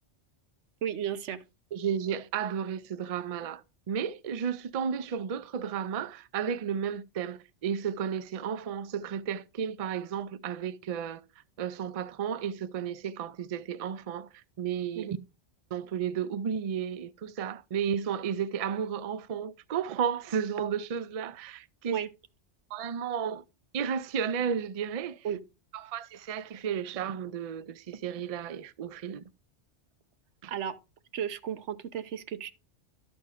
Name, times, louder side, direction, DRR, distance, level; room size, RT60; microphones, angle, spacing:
voice 1, 0.8-1.4 15.0-15.1 21.9-22.1 25.2-25.4 30.5-30.7 31.1-32.5, right 9 dB, 80° right, 1.0 m, -33 dB
voice 2, 1.7-11.2 11.6-15.2 15.7-22.0 22.7-23.4 23.7-25.3 25.7-29.2 30.4-30.5, right 7 dB, 50° right, 0.4 m, -33 dB
12.5 x 4.3 x 4.9 m
omnidirectional pair, 1.2 m